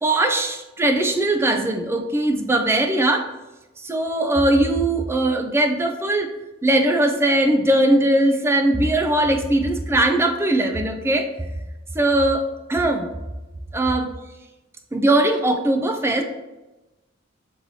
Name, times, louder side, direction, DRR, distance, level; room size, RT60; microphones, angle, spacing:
voice 1, 0.0-3.3 3.8-6.3 6.6-11.3 11.9-12.4 12.7-13.1 13.7-14.1 14.9-16.2, right 1 dB, 10° right, 4 dB, 0.3 m, -20 dB
5.4 x 3.0 x 2.7 m, 1.1 s
head